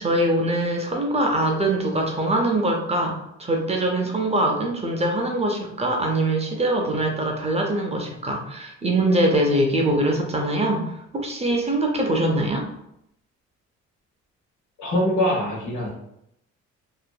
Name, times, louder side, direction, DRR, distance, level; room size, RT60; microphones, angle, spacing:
voice 1, 0.0-12.7, right 1 dB, 20° right, 1 dB, 0.5 m, -23 dB
voice 2, 14.8-15.9, left 1 dB, 75° left, -2 dB, 1.1 m, -23 dB
2.7 x 2.4 x 2.2 m, 0.79 s
cardioid pair, 90°, 30 cm